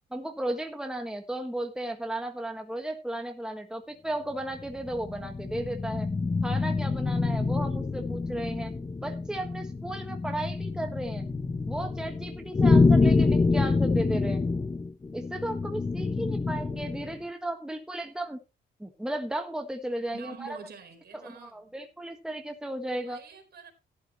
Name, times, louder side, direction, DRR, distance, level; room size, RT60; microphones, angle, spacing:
voice 1, 0.1-6.1 6.4-8.7 9.0-11.3 11.7-14.4 15.1-18.4 18.8-20.6 21.2-23.2, right 1 dB, 5° right, 1.6 m, -35 dB
sound 1, 4.5-17.1, left 3 dB, 20° left, 0.7 m, -27 dB
voice 2, 20.1-21.7 22.9-23.7, right 6 dB, 55° right, 4.3 m, -47 dB
13.5 x 11.5 x 3.1 m
cardioid pair, 90°, 20 cm